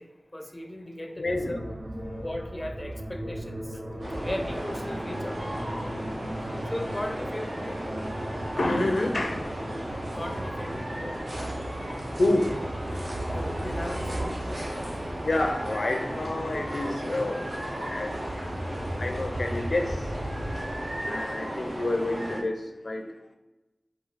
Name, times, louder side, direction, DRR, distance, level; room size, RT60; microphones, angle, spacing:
voice 1, 0.0-1.7 2.2-3.8 4.2-5.4 6.7-7.8 10.1-11.2 13.3-15.2, left 1 dB, 25° left, 5 dB, 0.4 m, -37 dB
voice 2, 1.2-2.5 3.2-3.4 3.8-4.3 8.6-9.5 12.2-12.6 15.2-17.5 17.9-18.2 19.0-20.1 21.1-23.1, left 2 dB, 75° left, 5 dB, 0.5 m, -29 dB
sound 1, 1.2-21.0, right 1 dB, 65° right, 0.7 m, -37 dB
sound 2, 4.0-22.4, equal, 85° right, 1.1 m, -35 dB
4.3 x 2.7 x 4.0 m, 1.1 s
wide cardioid pair, 65°, 0 cm